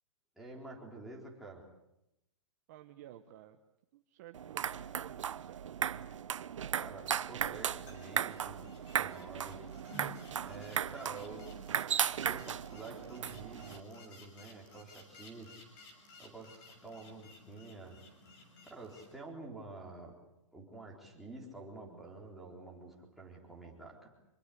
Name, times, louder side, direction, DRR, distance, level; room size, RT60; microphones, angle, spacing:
voice 1, 0.4-1.6 6.7-9.7 10.4-11.8 12.3-15.6 16.2-18.0 18.7-20.1 20.5-24.1, right 2 dB, ahead, -3 dB, 4.0 m, -49 dB
voice 2, 2.7-3.6 3.9-5.8, right 12 dB, 30° right, 7 dB, 1.2 m, -54 dB
sound 1, 4.3-13.8, right 9 dB, 75° right, 1.0 m, -36 dB
sound 2, 7.5-19.1, left 1 dB, 25° left, 6.6 m, -56 dB
26.5 x 22.5 x 8.5 m, 0.87 s
hypercardioid pair, 165°, 16 cm